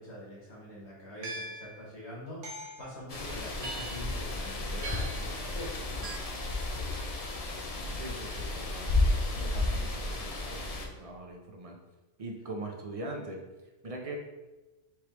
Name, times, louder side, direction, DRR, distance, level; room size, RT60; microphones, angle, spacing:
voice 1, 0.0-6.1, left 1 dB, 65° left, -6 dB, 1.6 m, -44 dB
sound 1, 1.2-1.7 2.4-2.9 3.6-4.1 4.8-5.3 6.0-6.2, right 2 dB, 85° right, 1.1 m, -40 dB
sound 2, 3.1-10.9, left 2 dB, 50° left, 0.4 m, -32 dB
voice 2, 7.9-8.9 9.3-11.8 12.2-13.4 13.8-14.2, right 2 dB, 45° right, 1 dB, 0.4 m, -41 dB
4.6 x 3.2 x 2.9 m, 1.1 s
omnidirectional pair, 1.2 m